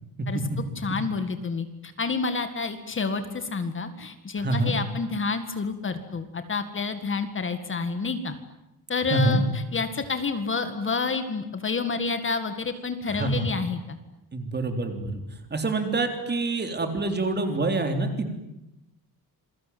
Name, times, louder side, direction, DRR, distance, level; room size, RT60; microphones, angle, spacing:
voice 1, 0.8-8.4 8.9-9.4 9.7-14.0, left 4 dB, 30° left, 9 dB, 1.9 m, -29 dB
voice 2, 4.4-4.8 9.1-9.4 13.1-13.5 14.3-15.2 15.5-18.4, right 2 dB, 25° right, 6 dB, 3.6 m, -26 dB
27.5 x 22.5 x 9.4 m, 0.91 s
wide cardioid pair, 165°, 37 cm